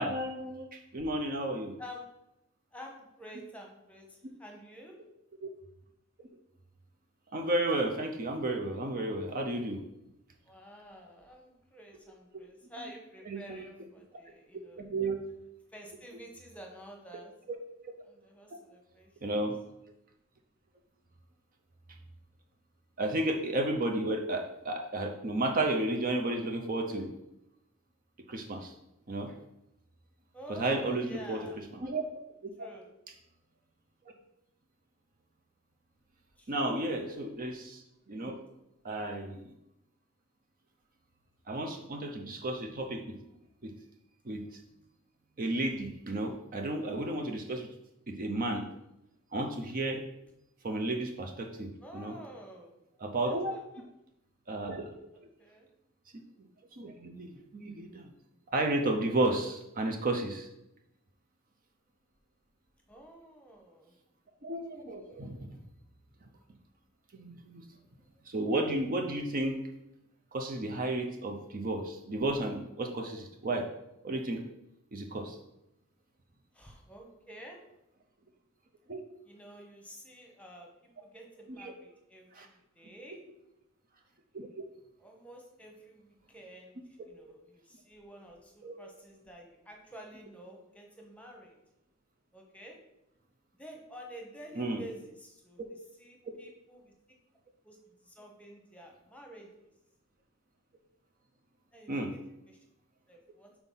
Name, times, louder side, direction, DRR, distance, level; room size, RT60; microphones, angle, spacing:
voice 1, 0.0-1.8 5.4-5.5 7.3-9.8 13.3-13.4 14.8-15.2 19.2-19.6 23.0-27.1 28.3-28.7 29.1-29.4 30.5-32.0 32.4-32.5 36.5-38.4 38.8-39.5 41.5-43.2 43.6-43.7 44.2-44.4 45.4-47.7 48.1-48.7 49.3-50.0 50.6-52.2 53.0-53.5 54.5-54.9 56.7-58.1 58.5-60.5 64.4-65.6 67.1-67.6 68.3-69.6 70.3-73.7 74.0-74.4 74.9-75.4 78.9-79.0 81.6-81.7 82.3-82.5 84.3-84.7 88.6-88.7 94.6-94.8 101.9-102.1, right 2 dB, 40° right, 3 dB, 0.7 m, -32 dB
voice 2, 2.7-4.9 10.4-14.8 15.7-17.3 18.0-19.4 30.3-31.6 32.6-32.9 36.4-36.6 51.8-52.7 53.3-53.8 55.1-55.7 62.9-63.9 76.5-77.6 79.2-80.7 81.0-83.2 85.0-86.8 87.1-91.6 92.3-92.8 93.6-95.6 96.0-96.9 97.6-99.5 101.7-102.2 102.5-102.6 103.1-103.5, equal, 5° left, 1 dB, 1.0 m, -50 dB
5.7 x 4.5 x 5.6 m, 0.87 s
head